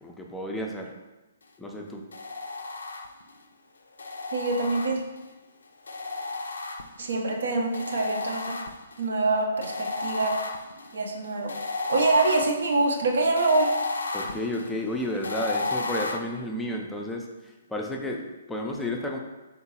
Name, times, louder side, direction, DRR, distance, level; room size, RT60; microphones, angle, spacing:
voice 1, 0.0-0.9 1.6-2.1 14.1-19.2, left 1 dB, 5° left, 0 dB, 0.5 m, -32 dB
sound 1, 2.1-3.4 4.0-5.3 5.9-7.2 7.7-9.1 9.6-16.2, left 3 dB, 70° left, 0.3 m, -33 dB
voice 2, 4.3-5.0 7.0-8.6 9.0-10.4 10.9-11.5 11.9-13.7, right 3 dB, 65° right, 2 dB, 0.6 m, -25 dB
3.7 x 3.6 x 2.8 m, 1.1 s
figure-of-eight pair, 125°, 0 cm